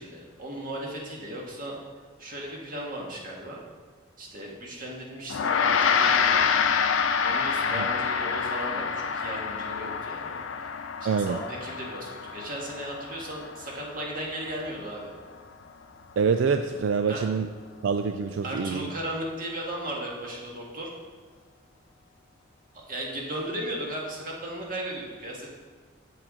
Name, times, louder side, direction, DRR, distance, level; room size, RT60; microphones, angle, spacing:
voice 1, 0.0-1.8 2.2-3.6 4.2-6.5 7.2-10.7 11.1-15.1 17.1-17.3 18.4-20.9 22.7-25.5, right 1 dB, 45° right, -2 dB, 1.7 m, -36 dB
Gong, 5.3-14.9, left 6 dB, 85° left, 0.4 m, -27 dB
voice 2, 11.1-11.4 16.2-17.5 17.8-18.9, right 5 dB, 80° right, 7 dB, 0.3 m, -26 dB
7.7 x 7.3 x 3.7 m, 1.5 s
head